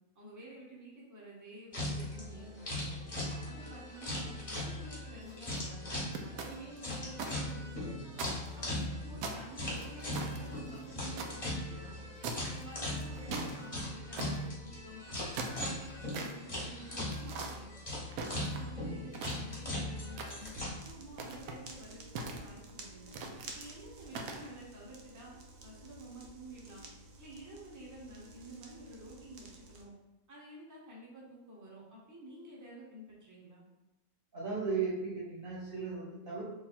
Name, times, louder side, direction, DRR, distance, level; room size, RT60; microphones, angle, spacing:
voice 1, 0.1-3.1 3.4-7.9 8.5-12.1 12.5-15.0 15.4-17.7 18.3-23.1 23.5-25.3 25.6-26.8 27.2-29.9 30.3-33.6, right 1 dB, 20° right, -4 dB, 0.6 m, -50 dB
sound 1, 1.7-20.7, left 1 dB, 25° left, 1.0 m, -39 dB
sound 2, 5.2-5.6 6.1-7.3 7.7-7.8 8.1-8.9 9.2-11.3 12.2-12.6 13.0-13.5 14.2-14.5 15.1-16.3 17.1-17.5 18.1-18.7 19.1-19.7 20.2-20.6 21.1-21.6 22.2-22.7 23.1-23.5 24.1-24.5, right 3 dB, 85° right, 1.1 m, -41 dB
sound 3, 20.4-29.8, right 2 dB, 60° right, 0.6 m, -52 dB
voice 2, 34.3-36.5, right 4 dB, 45° right, -5 dB, 1.0 m, -36 dB
3.2 x 2.3 x 4.1 m, 0.98 s
omnidirectional pair, 1.5 m